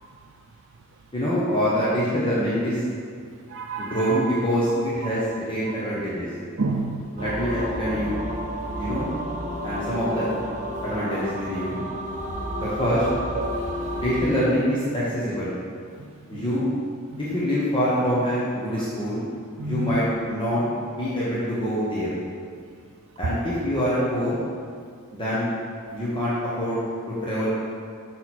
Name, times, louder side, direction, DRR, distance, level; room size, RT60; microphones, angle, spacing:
voice 1, 1.1-2.8 3.8-6.3 7.1-8.2 8.7-9.1 9.6-10.3 10.8-11.8 12.6-13.1 13.9-15.5 16.3-16.7 17.2-19.2 19.6-22.1 23.2-24.4 25.1-25.5 25.9-27.6, equal, 25° left, -9 dB, 1.2 m, -25 dB
voice 2, 3.5-4.2 5.0-5.2 5.6-5.7 6.6-7.0 10.7-10.8 13.4-13.7 16.0-16.4 17.1-17.5 19.6-19.9 25.8-26.0 27.2-27.3, right 2 dB, 60° right, 0 dB, 0.5 m, -31 dB
sound 1, 7.2-14.2, equal, 35° right, 1.0 m, -31 dB
6.4 x 5.8 x 4.4 m, 2.1 s
head